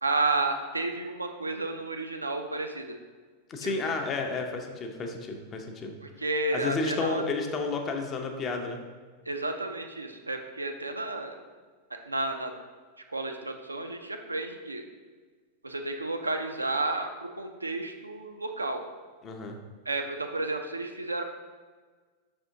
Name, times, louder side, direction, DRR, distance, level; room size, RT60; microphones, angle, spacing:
voice 1, 0.0-2.9 3.6-3.9 6.0-7.2 9.3-11.4 12.1-12.5 13.1-14.8 15.6-18.8 19.9-21.2, right 2 dB, 80° right, 5 dB, 0.3 m, -31 dB
voice 2, 3.5-6.0 6.5-8.8 19.2-19.6, left 4 dB, 30° left, 4 dB, 0.5 m, -32 dB
5.5 x 3.4 x 2.7 m, 1.5 s
figure-of-eight pair, 90°, 0 cm